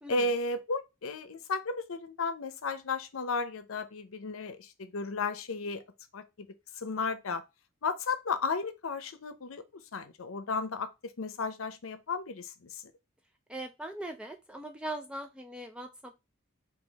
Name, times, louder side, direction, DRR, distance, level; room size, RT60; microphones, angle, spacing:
voice 1, 0.1-5.8 6.1-6.5 6.8-7.4 7.8-12.8, left 3 dB, 80° left, 0.6 m, -34 dB
voice 2, 13.5-16.2, right 1 dB, 5° right, 0.3 m, -40 dB
3.9 x 2.8 x 3.9 m
head